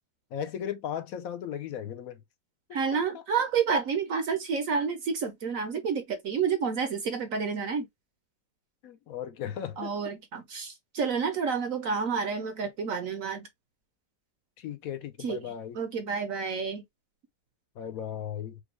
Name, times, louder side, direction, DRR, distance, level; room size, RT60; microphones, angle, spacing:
voice 1, 0.3-2.2 2.9-3.2 8.8-9.9 14.6-15.8 17.8-18.6, left 9 dB, 65° left, 0.9 m, -36 dB
voice 2, 2.7-7.9 9.8-13.5 15.2-15.4 15.7-16.8, right 6 dB, 60° right, 1.0 m, -29 dB
5.2 x 2.3 x 3.1 m
omnidirectional pair, 1.9 m